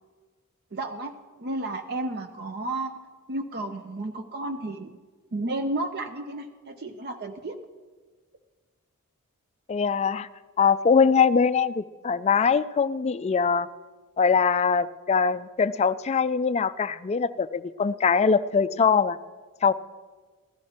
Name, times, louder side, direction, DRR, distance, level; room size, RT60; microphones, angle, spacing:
voice 1, 0.7-1.1 1.4-2.9 3.3-5.0 5.3-7.6, right 2 dB, 45° right, 6 dB, 0.6 m, -32 dB
voice 2, 9.7-10.3 10.6-13.7 14.2-19.2 19.6-19.7, left 5 dB, 30° left, 15 dB, 0.3 m, -22 dB
15.5 x 12.5 x 4.3 m, 1.4 s
head